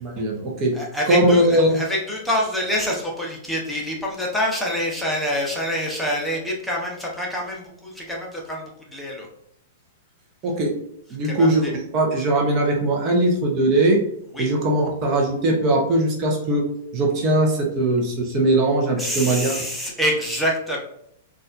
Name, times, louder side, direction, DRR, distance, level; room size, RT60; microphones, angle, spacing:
voice 1, 0.0-0.7 1.1-1.8 10.4-10.7 11.1-14.0 14.4-16.7 16.9-19.6, right 1 dB, 35° right, 0 dB, 0.8 m, -20 dB
voice 2, 0.7-9.3 11.2-11.7 14.3-14.5 19.0-20.8, equal, 5° left, -3 dB, 0.9 m, -26 dB
4.0 x 2.5 x 2.5 m, 0.73 s
hypercardioid pair, 115°, 0 cm